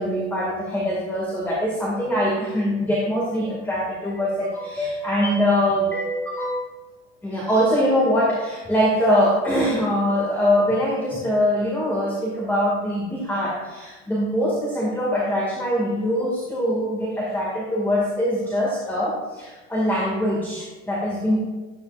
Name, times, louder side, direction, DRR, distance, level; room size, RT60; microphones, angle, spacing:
voice 1, 0.0-6.6 7.2-21.4, equal, 5° left, -5 dB, 2.2 m, -23 dB
13.0 x 9.4 x 2.6 m, 1.2 s
supercardioid pair, 120°, 35 cm